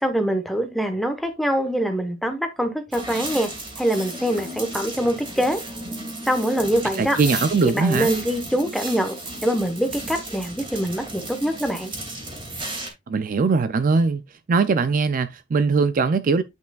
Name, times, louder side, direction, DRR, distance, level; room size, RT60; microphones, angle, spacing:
voice 1, 0.0-3.5 3.8-5.6 6.3-7.2 7.7-9.1 9.4-11.9, equal, ahead, 1.0 m, -24 dB
sound 1, 2.9-12.9, right 1 dB, 25° right, 2.4 m, -34 dB
voice 2, 6.9-8.1 13.1-14.2 14.5-16.4, right 4 dB, 45° right, 0.4 m, -21 dB
9.1 x 5.4 x 2.3 m
head